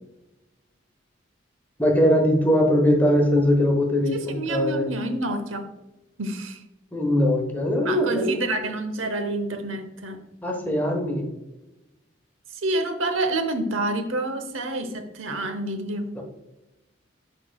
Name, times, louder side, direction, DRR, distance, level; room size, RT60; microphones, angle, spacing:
voice 1, 1.8-4.9 6.9-8.4 10.4-11.3 16.1-16.2, left 1 dB, 10° left, 2 dB, 1.0 m, -21 dB
voice 2, 4.1-5.7 6.2-6.6 7.8-10.2 12.6-16.1, right 2 dB, 90° right, 8 dB, 0.9 m, -28 dB
11.0 x 3.8 x 2.3 m, 0.97 s
head